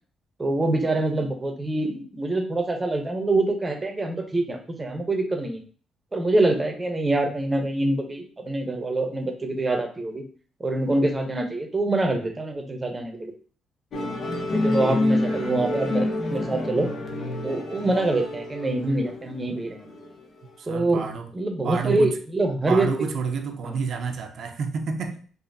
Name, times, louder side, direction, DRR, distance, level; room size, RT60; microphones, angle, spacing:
voice 1, 0.4-5.6 6.1-10.2 10.6-13.3 14.5-16.9 17.4-19.9 20.7-21.0 21.3-22.9 23.6-23.8, right 2 dB, 25° right, 0.8 m, -25 dB
Musical instrument, 13.9-20.5, left 1 dB, 55° left, 0.7 m, -28 dB
voice 2, 20.6-21.3 21.6-22.1 22.7-25.2, right 5 dB, 65° right, 0.6 m, -29 dB
4.0 x 2.7 x 2.6 m
cardioid pair, 90°, 0 cm